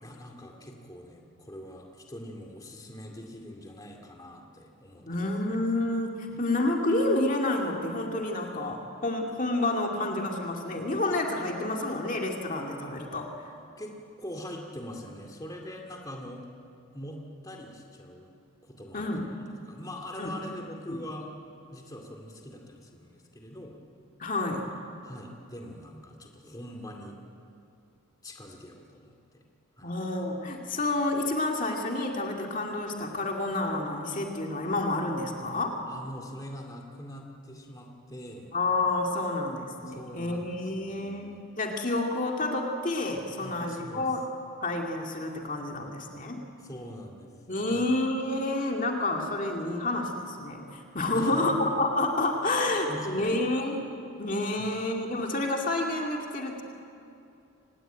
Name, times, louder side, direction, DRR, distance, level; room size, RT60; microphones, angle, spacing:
voice 1, 0.0-5.3 5.7-5.9 6.3-6.4 13.8-16.4 16.9-18.3 18.6-21.3 21.7-23.8 25.0-27.2 28.2-29.5 29.8-29.9 35.8-38.5 39.9-41.4 43.4-44.1 46.6-47.3 47.6-47.9 51.1-51.6 52.4-53.5 54.5-54.7, equal, 15° left, 1 dB, 2.3 m, -43 dB
voice 2, 5.1-13.3 18.9-19.3 20.2-20.3 20.9-21.0 24.2-24.7 29.8-35.8 38.5-44.2 44.6-46.4 47.5-53.8 54.2-56.6, left 2 dB, 35° left, 1 dB, 2.2 m, -29 dB
25.5 x 19.0 x 9.1 m, 2.6 s
head